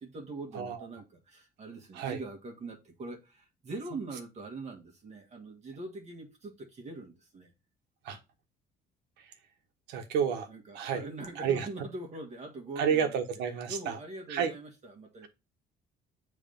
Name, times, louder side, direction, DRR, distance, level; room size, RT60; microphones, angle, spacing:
voice 1, 0.0-7.5 10.5-13.2 13.7-15.3, right 2 dB, 40° right, 1.4 m, -42 dB
voice 2, 0.5-0.8 1.9-2.2 8.0-8.2 9.2-9.3 9.9-10.5 10.7-11.0 11.4-11.7 12.8-14.0 14.3-14.5, right 7 dB, 85° right, 1.2 m, -30 dB
7.1 x 3.4 x 5.2 m
cardioid pair, 110°, 17 cm